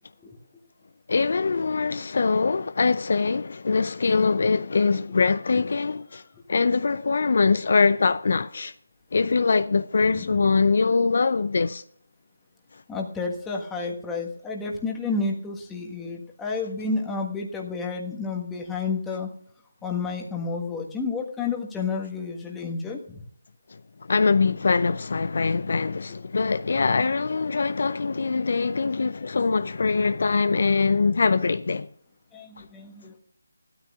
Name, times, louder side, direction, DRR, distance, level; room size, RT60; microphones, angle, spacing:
voice 1, 1.1-6.2 6.5-8.7 9.1-11.8 12.7-12.8 23.7-23.8 24.1-31.9 32.6-32.7, left 4 dB, 50° left, 0.5 m, -23 dB
voice 2, 10.0-10.5 12.9-19.3 19.8-23.2 32.3-33.1, left 4 dB, 5° left, 1.5 m, -30 dB
16.5 x 13.0 x 2.5 m
figure-of-eight pair, 160°, 0 cm